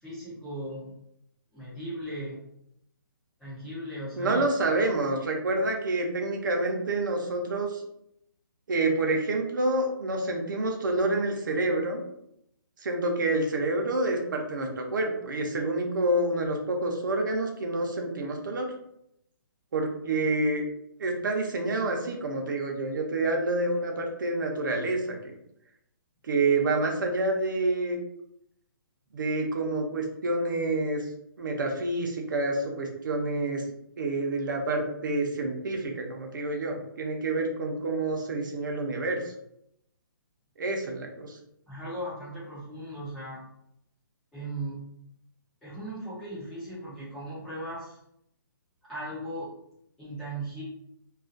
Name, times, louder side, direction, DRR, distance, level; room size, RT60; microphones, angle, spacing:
voice 1, 0.0-0.9 1.5-2.4 3.4-4.4 41.7-43.4 44.3-44.8 45.6-48.0 48.9-49.5 50.0-50.6, right 1 dB, 5° left, -13 dB, 0.3 m, -37 dB
voice 2, 4.2-7.8 8.7-12.0 12.8-18.7 19.7-20.6 21.0-25.2 26.2-28.0 29.1-31.0 31.4-33.6 34.0-39.2 40.6-41.4, right 2 dB, 60° right, 2 dB, 0.6 m, -28 dB
2.3 x 2.2 x 2.5 m, 0.76 s
hypercardioid pair, 175°, 12 cm